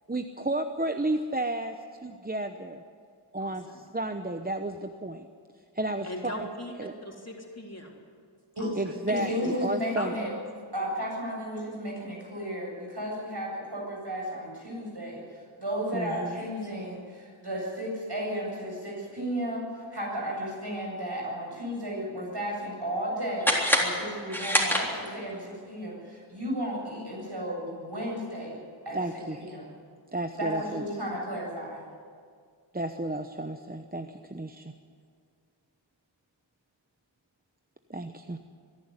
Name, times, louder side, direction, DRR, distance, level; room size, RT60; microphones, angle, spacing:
voice 1, 0.1-2.8 3.3-5.3 5.7-6.5 6.8-6.9 8.8-10.3 15.9-16.4 28.9-29.4 30.1-30.8 32.7-34.7 37.9-38.4, right 2 dB, 20° right, 7 dB, 0.9 m, -32 dB
voice 2, 3.4-3.8 6.0-7.9 8.6-8.9 9.9-10.1, left 1 dB, 30° left, -1 dB, 3.6 m, -40 dB
voice 3, 9.1-10.3 10.7-28.6 28.8-29.0 29.4-29.7 30.3-31.8, equal, 55° right, -3 dB, 7.7 m, -34 dB
sound 1, 23.4-25.3, equal, 5° left, 3.6 m, -26 dB
24.0 x 11.0 x 9.7 m, 2.1 s
wide cardioid pair, 45°, 48 cm